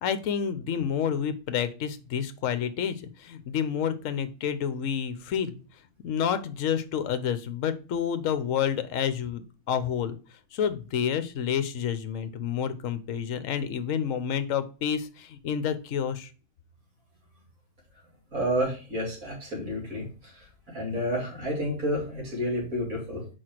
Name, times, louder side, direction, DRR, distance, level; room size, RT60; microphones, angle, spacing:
voice 1, 0.0-5.6 6.0-10.2 10.5-16.3, left 8 dB, 60° left, 11 dB, 1.1 m, -29 dB
voice 2, 18.3-20.3 20.7-23.2, equal, 60° right, -1 dB, 3.4 m, -30 dB
4.8 x 4.6 x 5.8 m, 0.35 s
omnidirectional pair, 1.6 m